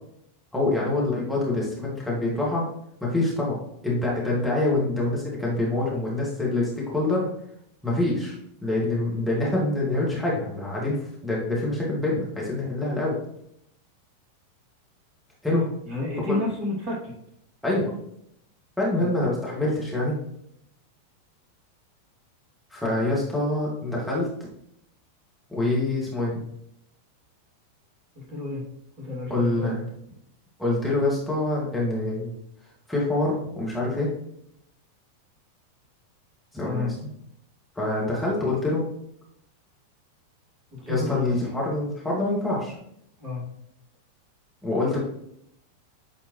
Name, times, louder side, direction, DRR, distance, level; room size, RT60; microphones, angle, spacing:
voice 1, 0.5-2.7 3.0-3.6 3.8-7.3 7.8-11.0 11.2-13.2 15.4-15.6 16.3-16.4 17.6-17.9 18.8-20.1 22.7-24.3 25.5-26.3 29.3-29.8 30.6-32.3 32.9-34.1 36.5-36.9 37.8-38.8 40.8-42.8 44.6-45.0, left 2 dB, ahead, -7 dB, 2.2 m, -25 dB
voice 2, 15.5-17.1 19.0-19.1 28.2-28.6 29.0-29.7 36.6-36.9 38.4-38.5 40.7-41.5 43.2-43.4, left 2 dB, 35° right, -3 dB, 2.7 m, -31 dB
9.4 x 4.3 x 3.2 m, 0.73 s
figure-of-eight pair, 90°, 0 cm